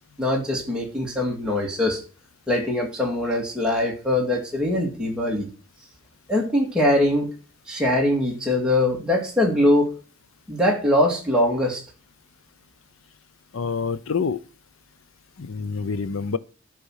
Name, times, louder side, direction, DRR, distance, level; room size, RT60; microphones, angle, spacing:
voice 1, 0.2-2.0 2.5-5.5 6.3-7.3 7.7-9.9 10.5-11.8, left 1 dB, 5° right, 2.5 m, -22 dB
voice 2, 13.5-14.4 15.4-16.4, left 5 dB, 75° left, 0.6 m, -27 dB
13.0 x 5.2 x 6.5 m
head